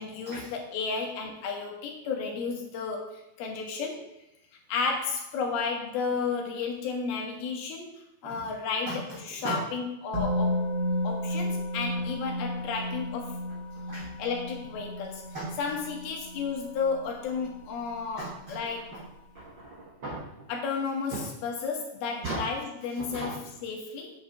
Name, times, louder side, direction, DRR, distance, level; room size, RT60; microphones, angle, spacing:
voice 1, 0.0-4.1 4.7-10.7 11.0-13.4 14.2-15.3 15.6-19.0 20.5-24.2, left 5 dB, 85° left, 1 dB, 3.3 m, -33 dB
Musical instrument, 10.1-18.0 18.3-18.5, left 1 dB, 55° right, 4.2 m, -33 dB
voice 2, 13.7-14.1 15.3-15.6 18.2-18.6 18.9-19.0 19.3-20.5 21.1-21.3 22.2-22.5 23.0-23.4, right 2 dB, 75° right, -4 dB, 1.0 m, -37 dB
8.2 x 7.9 x 3.4 m, 0.85 s
omnidirectional pair, 4.3 m